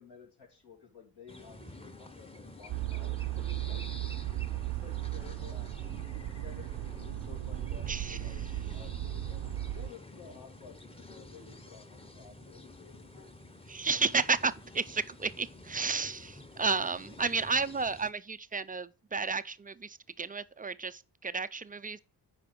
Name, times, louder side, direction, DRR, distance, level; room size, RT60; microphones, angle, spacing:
voice 1, 0.0-4.0 4.5-9.5 9.7-13.3, left 6 dB, 65° left, 2.7 m, -53 dB
sound 1, 1.3-18.1, left 2 dB, 15° left, 1.0 m, -50 dB
sound 2, 2.7-9.9, right 15 dB, 70° right, 0.6 m, -36 dB
voice 2, 7.9-8.2 13.7-22.0, right 4 dB, 20° right, 0.4 m, -32 dB
8.4 x 5.0 x 5.1 m
cardioid pair, 60°, 43 cm